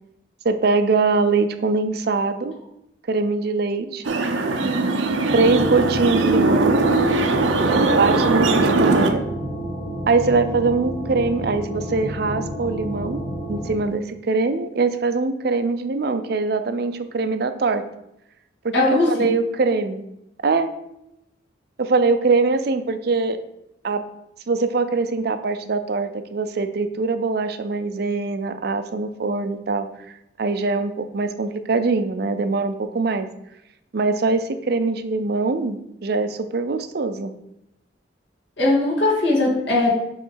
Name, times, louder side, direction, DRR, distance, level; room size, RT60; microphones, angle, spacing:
voice 1, 0.4-2.5 3.1-4.1 5.3-6.8 7.9-9.2 10.1-13.2 13.5-17.8 18.6-20.0 20.4-20.7 21.8-23.4 23.8-24.0 24.5-29.9 30.4-33.3 33.9-37.3, right 3 dB, 55° right, 10 dB, 0.5 m, -22 dB
sound 1, 4.0-9.1, right 3 dB, 90° right, 0.7 m, -20 dB
sound 2, 5.3-13.8, equal, 5° left, 1.3 m, -30 dB
voice 2, 18.7-19.3 38.6-40.0, left 2 dB, 70° left, -4 dB, 2.1 m, -19 dB
7.1 x 3.2 x 4.6 m, 0.84 s
head